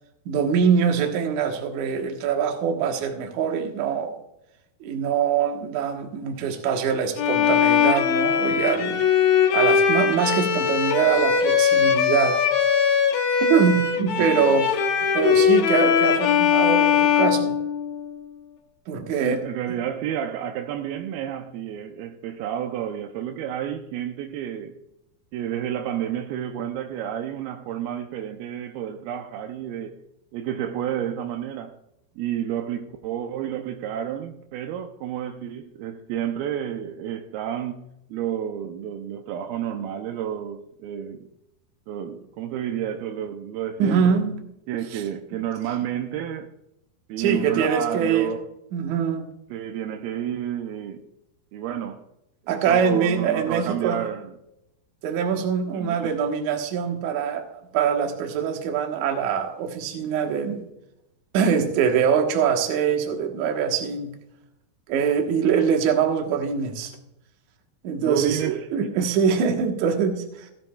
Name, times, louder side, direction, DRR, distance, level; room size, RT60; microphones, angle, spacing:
voice 1, 0.3-4.2 4.8-9.0 9.5-12.4 13.5-14.7 15.1-17.6 18.9-19.4 43.8-44.3 44.9-45.0 47.2-48.3 48.7-49.2 52.5-54.0 55.0-60.6 61.3-64.1 64.9-66.9 67.8-70.5, right 7 dB, 60° right, 2.2 m, -23 dB
Bowed string instrument, 7.2-18.2, left 7 dB, 65° left, 1.8 m, -20 dB
voice 2, 14.2-14.6 19.2-24.7 25.3-30.0 30.3-31.7 32.2-41.3 41.9-44.2 44.7-46.5 47.1-48.5 49.5-51.0 51.5-52.1 52.5-54.3 55.7-56.1 68.0-69.1, right 10 dB, 80° right, 2.4 m, -30 dB
16.5 x 10.5 x 2.3 m
omnidirectional pair, 4.7 m